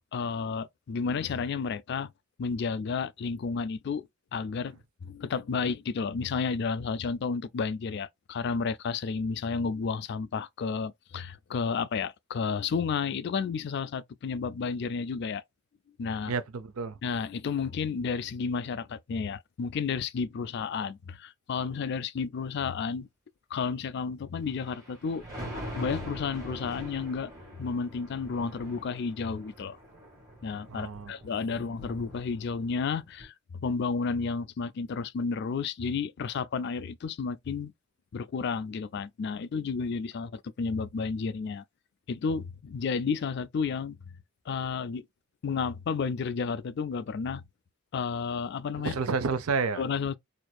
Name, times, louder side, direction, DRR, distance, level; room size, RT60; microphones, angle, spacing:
voice 1, 0.1-2.1 2.4-15.4 16.0-16.3 17.0-23.1 23.5-25.2 25.8-27.3 27.6-29.8 30.4-37.7 38.1-41.6 42.1-44.0 44.5-45.1 45.4-47.4 47.9-48.9 49.8-50.1, left 5 dB, 50° left, 0.3 m, -32 dB
voice 2, 16.3-17.0 30.7-31.1 31.5-31.6 48.8-49.8, right 4 dB, 90° right, 0.5 m, -30 dB
Thunder, 24.5-32.8 33.2-33.3, equal, 15° right, 1.8 m, -43 dB
4.3 x 2.5 x 2.3 m
head